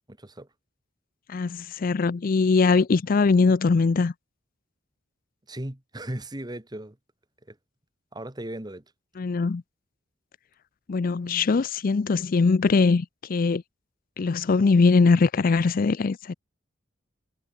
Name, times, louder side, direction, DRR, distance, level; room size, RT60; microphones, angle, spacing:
voice 1, 0.2-0.5 5.5-7.0 7.5-7.6 8.1-8.8, right 1 dB, 20° right, 1.6 m, -36 dB
voice 2, 1.3-4.1 9.2-9.6 10.9-13.6 14.2-16.3, left 4 dB, 45° left, 0.4 m, -21 dB
head